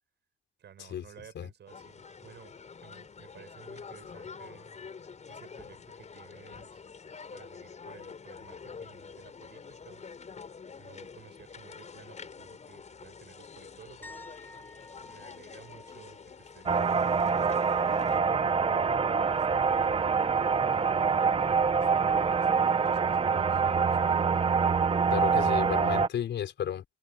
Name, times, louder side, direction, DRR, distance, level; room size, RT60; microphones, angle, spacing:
voice 1, 0.6-4.7 5.3-6.8 7.3-10.0 10.8-14.2 15.1-18.6 19.2-20.2 20.9-24.3, right 9 dB, 65° right, 6.7 m, -54 dB
sound 1, 1.7-18.2, left 5 dB, 40° left, 5.9 m, -47 dB
sound 2, 14.0-17.8 18.1-18.4 21.3-21.4, left 2 dB, 10° left, 6.3 m, -53 dB
sound 3, 16.7-26.1, right 5 dB, 30° right, 1.1 m, -25 dB
voice 2, 25.1-26.8, left 9 dB, 75° left, 4.9 m, -33 dB
cardioid pair, 125°, 19 cm